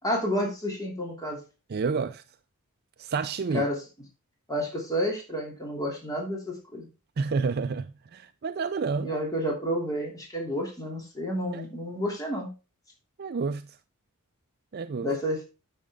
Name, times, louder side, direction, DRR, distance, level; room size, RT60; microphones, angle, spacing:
voice 1, 0.0-1.4 3.5-3.8 4.5-6.9 9.0-12.5 15.0-15.4, equal, 15° left, 2.8 m, -30 dB
voice 2, 1.7-2.2 3.0-3.7 7.2-9.2 11.5-11.6 13.2-13.6 14.7-15.1, right 5 dB, 45° right, 0.4 m, -29 dB
10.0 x 7.5 x 3.6 m
head